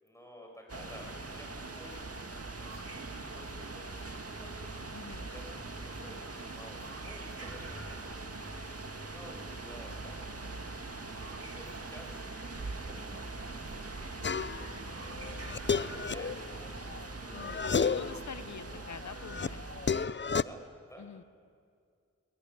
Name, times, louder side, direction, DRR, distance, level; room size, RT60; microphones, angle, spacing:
voice 1, 0.0-2.1 2.6-4.6 5.1-5.5 5.7-10.3 10.8-14.1 14.5-16.7 17.1-17.8 20.4-21.1, equal, 10° left, 0 dB, 7.1 m, -53 dB
sound 1, 0.7-20.1, right 3 dB, 55° right, 2.2 m, -42 dB
voice 2, 4.9-5.3 17.3-19.6 21.0-21.3, left 6 dB, 70° left, 15 dB, 0.8 m, -47 dB
sound 2, 14.2-14.7 15.2-17.0 17.3-18.2 18.6-20.4, left 5 dB, 40° left, 0.6 m, -32 dB
21.5 x 18.5 x 9.7 m, 2.2 s
cardioid pair, 40°, 30 cm